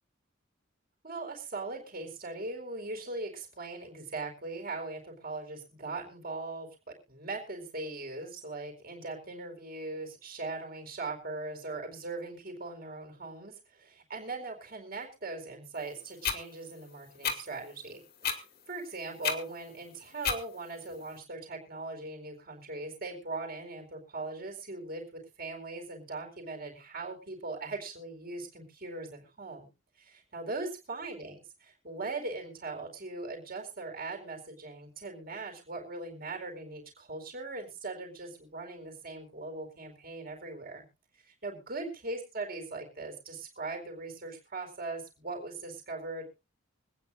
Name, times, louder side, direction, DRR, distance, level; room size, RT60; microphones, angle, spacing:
voice 1, 1.0-6.7 7.1-18.4 18.7-29.7 30.0-40.8 41.1-46.3, right 3 dB, 45° right, 3 dB, 4.4 m, -40 dB
sound 1, 16.2-16.4 17.2-17.4 18.2-18.4 19.2-19.4 20.2-20.4, left 6 dB, 50° left, 2.3 m, -29 dB
25.0 x 9.5 x 2.6 m, 0.30 s
head